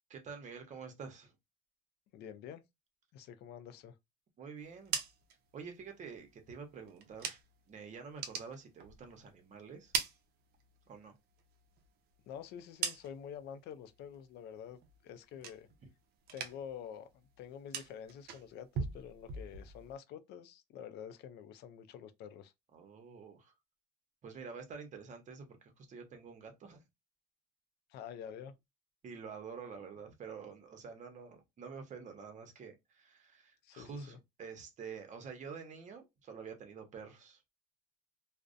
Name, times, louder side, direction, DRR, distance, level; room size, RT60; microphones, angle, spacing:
voice 1, 0.1-1.4 4.4-5.0 5.5-7.4 7.7-9.9 10.9-11.1 22.7-23.5 24.2-26.8 29.0-37.4, right 5 dB, 45° right, 0.8 m, -48 dB
voice 2, 2.1-2.6 3.1-4.0 12.3-15.7 16.3-22.5 27.9-28.6 33.6-34.2, left 8 dB, 75° left, 0.4 m, -48 dB
sound 1, 4.6-7.7 8.0-9.3 9.6-11.0 11.3-13.5 13.8-14.3 14.6-16.0 16.2-16.8 17.1-19.9, right 6 dB, 70° right, 0.5 m, -42 dB
2.4 x 2.1 x 2.5 m
cardioid pair, 110°, 17 cm